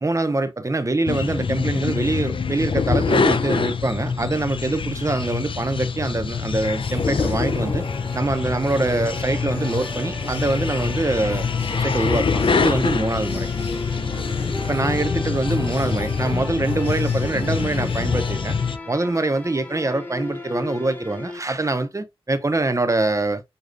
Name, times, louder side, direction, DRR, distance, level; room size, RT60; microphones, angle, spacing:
voice 1, 0.0-7.8 8.1-11.4 11.7-13.5 14.7-18.6 18.9-23.4, right 2 dB, 30° right, 0.6 m, -24 dB
sound 1, 1.1-18.8, left 5 dB, 60° left, 0.5 m, -25 dB
sound 2, 6.7-18.4, left 1 dB, 85° left, 1.4 m, -37 dB
sound 3, 7.6-21.4, left 2 dB, 20° left, 1.2 m, -37 dB
6.5 x 2.3 x 2.5 m
cardioid pair, 50°, 10 cm